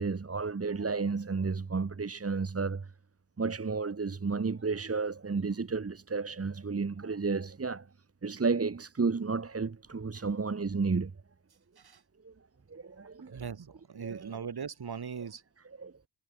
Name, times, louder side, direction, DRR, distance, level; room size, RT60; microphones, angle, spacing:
voice 1, 0.0-2.9 3.4-7.9 8.2-11.1 12.2-12.3 12.7-13.4 14.0-14.5 15.2-15.3 15.6-15.9, right 4 dB, 30° right, 2.7 m, -32 dB
voice 2, 13.3-15.4, right 6 dB, 50° right, 6.0 m, -39 dB
wide cardioid pair, 140°, 47 cm